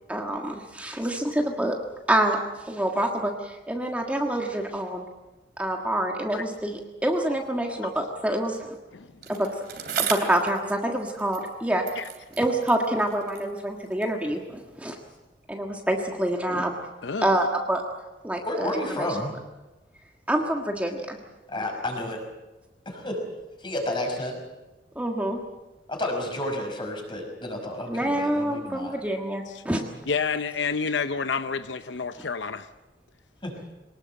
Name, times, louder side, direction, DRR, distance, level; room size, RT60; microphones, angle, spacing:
voice 1, 0.1-1.8 2.1-2.4 2.7-5.0 5.6-8.8 9.3-9.5 10.0-11.8 12.4-15.0 15.5-16.7 17.2-17.8 18.2-18.7 20.3-21.2 24.9-25.4 27.9-29.8, right 1 dB, 10° right, 2 dB, 1.7 m, -26 dB
Bicycle, 9.2-11.6 11.8-14.2 15.0-15.1, right 8 dB, 60° right, 3.2 m, -36 dB
voice 2, 17.0-17.4 29.5-29.6 30.1-32.7, left 5 dB, 80° left, 11 dB, 0.7 m, -29 dB
voice 3, 18.4-19.3 21.5-22.2 22.9-23.2 23.6-24.4 25.9-28.9 33.4-33.5, left 1 dB, 25° left, 2 dB, 5.5 m, -31 dB
23.5 x 19.5 x 7.7 m, 1.1 s
head